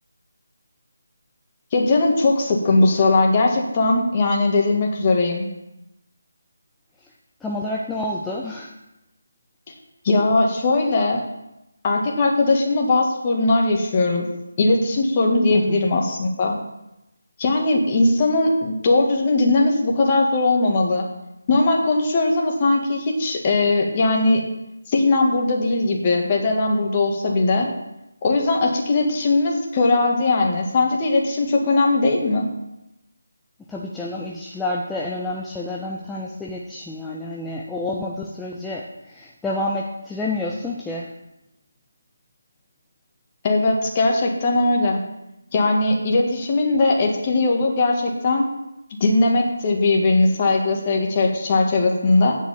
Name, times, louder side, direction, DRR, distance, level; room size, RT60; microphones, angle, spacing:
voice 1, 1.7-5.5 10.0-11.2 11.8-14.3 14.6-16.6 17.4-21.1 21.5-24.4 24.9-27.7 28.2-32.5 43.4-45.0 45.5-48.4 49.0-52.4, left 2 dB, 25° left, 0 dB, 1.8 m, -19 dB
voice 2, 7.4-8.7 15.5-15.8 33.7-41.1, left 2 dB, 5° left, -4 dB, 0.6 m, -29 dB
9.1 x 6.7 x 7.2 m, 0.91 s
figure-of-eight pair, 155°, 0 cm